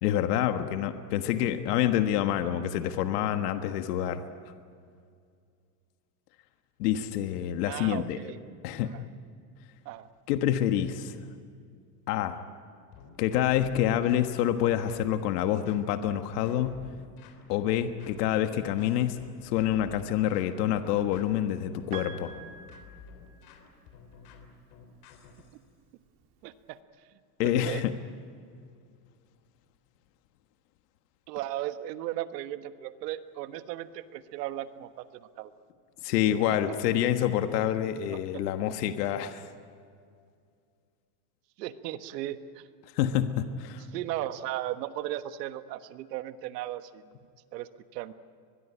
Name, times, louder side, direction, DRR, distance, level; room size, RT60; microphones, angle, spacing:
voice 1, 0.0-4.2 6.8-8.2 8.6-9.0 10.3-11.3 12.1-12.4 13.2-16.8 17.5-22.3 27.4-27.9 36.0-39.4 42.9-43.8, left 11 dB, 70° left, 8 dB, 1.5 m, -27 dB
voice 2, 7.7-8.4 8.8-9.0 9.8-10.1 26.4-26.8 27.4-27.8 31.3-35.5 36.5-36.8 38.3-38.4 41.6-42.6 43.9-47.0 47.5-48.1, right 14 dB, 75° right, 11 dB, 1.4 m, -36 dB
sound 1, 12.9-25.6, left 5 dB, 45° left, 3.5 m, -52 dB
Piano, 21.9-23.9 25.2-25.3, right 6 dB, 40° right, 2.0 m, -45 dB
23.0 x 21.5 x 10.0 m, 2.3 s
supercardioid pair, 160°, 48 cm